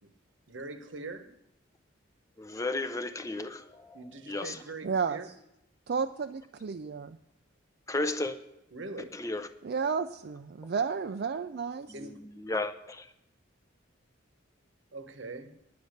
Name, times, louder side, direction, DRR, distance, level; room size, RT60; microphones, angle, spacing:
voice 1, 0.5-1.4 3.9-5.3 8.7-9.2 11.9-12.2 14.9-15.6, right 3 dB, 70° right, 1.0 m, -42 dB
voice 2, 2.4-4.0 4.3-4.6 7.9-8.4 9.1-9.5 12.0-13.1, left 2 dB, 15° left, 0.5 m, -34 dB
voice 3, 4.8-5.2 5.9-7.2 9.6-11.9, right 5 dB, 55° right, 0.4 m, -32 dB
10.0 x 9.4 x 6.5 m
head